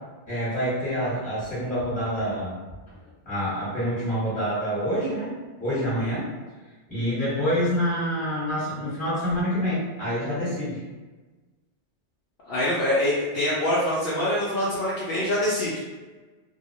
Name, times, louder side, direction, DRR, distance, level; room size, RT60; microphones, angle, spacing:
voice 1, 0.3-2.6 3.2-5.3 5.6-6.3 6.9-10.8, equal, 5° left, -11 dB, 1.1 m, -27 dB
voice 2, 12.5-15.7, left 1 dB, 60° left, -8 dB, 0.7 m, -24 dB
2.2 x 2.0 x 2.7 m, 1.2 s
omnidirectional pair, 1.2 m